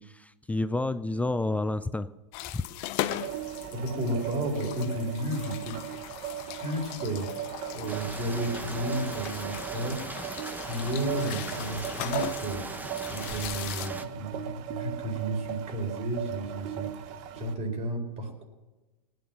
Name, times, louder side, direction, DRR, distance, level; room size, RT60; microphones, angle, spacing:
voice 1, 0.0-2.1 2.5-2.6, left 2 dB, 5° left, 12 dB, 0.4 m, -29 dB
sound 1, 2.3-13.9, left 15 dB, 45° left, 0.8 m, -39 dB
sound 2, 3.0-17.5, right 11 dB, 50° right, 1.3 m, -38 dB
voice 2, 3.4-5.8 6.6-10.0 10.7-12.6 13.1-18.4, right 1 dB, 35° right, 4 dB, 4.5 m, -33 dB
sound 3, 7.9-14.0, right 2 dB, 10° right, 1.1 m, -39 dB
19.5 x 9.5 x 6.2 m, 1.1 s
hypercardioid pair, 110°, 20 cm